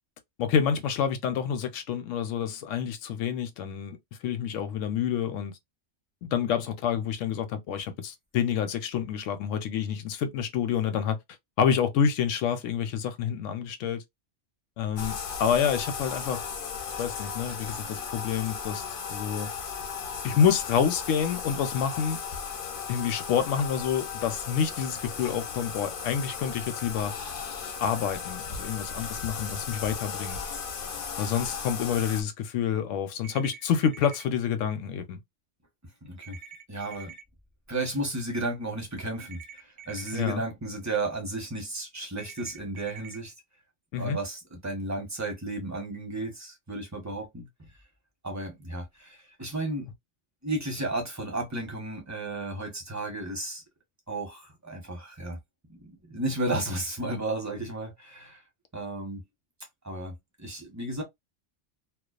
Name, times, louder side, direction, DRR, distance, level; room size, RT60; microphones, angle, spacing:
voice 1, 0.4-4.0 4.2-5.5 6.2-11.2 11.6-14.0 14.8-16.4 17.0-18.8 19.1-19.5 20.2-22.2 22.9-27.1 27.8-30.4 31.2-35.2 40.1-40.4 43.9-44.2, left 8 dB, 85° left, 0.9 m, -28 dB
Bathtub (filling or washing), 15.0-32.2, left 6 dB, 55° left, 0.7 m, -36 dB
sound 1, 33.2-34.2 36.2-37.2 39.2-40.2 42.2-43.2, right 7 dB, 55° right, 0.6 m, -46 dB
voice 2, 36.0-36.4 36.7-37.2 37.7-43.3 44.0-47.7 48.2-49.9 50.4-53.6 54.1-55.4 55.7-58.4 58.7-59.2 59.8-61.0, right 2 dB, 15° right, 0.7 m, -33 dB
2.3 x 2.3 x 2.3 m
omnidirectional pair, 1.3 m